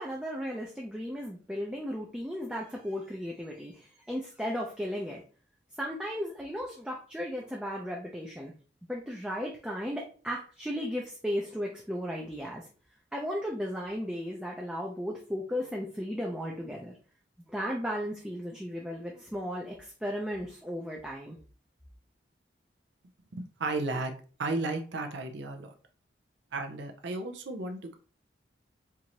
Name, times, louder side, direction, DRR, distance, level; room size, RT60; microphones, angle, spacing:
voice 1, 0.0-5.2 5.8-8.5 8.9-12.7 13.1-17.0 17.5-21.4, equal, 5° right, -2 dB, 0.4 m, -35 dB
voice 2, 23.3-24.1 24.4-25.7 26.5-28.0, right 2 dB, 85° right, 4 dB, 0.5 m, -34 dB
4.5 x 2.5 x 2.9 m, 0.40 s
head